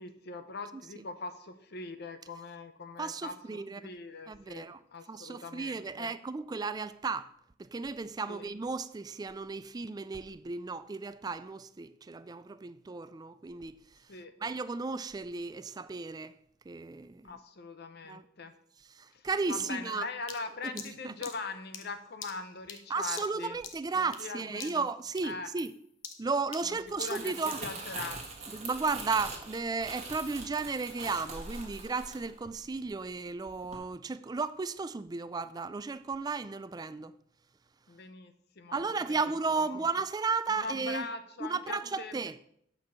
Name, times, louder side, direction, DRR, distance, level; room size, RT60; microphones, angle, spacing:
voice 1, 0.0-4.7 4.9-6.1 8.3-8.5 14.1-14.3 17.2-18.5 19.1-23.6 23.9-24.9 25.2-25.5 26.6-28.2 37.9-38.8 39.1-39.3 39.6-39.8 40.5-42.1, left 4 dB, 55° left, 0.8 m, -42 dB
voice 2, 3.0-3.9 4.3-4.8 5.1-7.3 7.6-14.1 14.4-16.3 16.7-17.3 18.0-18.2 18.9-20.1 20.6-21.1 22.9-25.7 26.2-27.6 28.5-37.1 38.7-41.1 41.4-42.3, right 4 dB, 20° right, 0.3 m, -34 dB
sound 1, 20.3-24.3 24.6-24.9 25.2-27.7, left 7 dB, 75° left, 1.0 m, -46 dB
Crumpling crinkling, 26.7-33.1 33.5-33.7, right 3 dB, 35° right, 1.6 m, -43 dB
8.3 x 4.5 x 6.2 m
head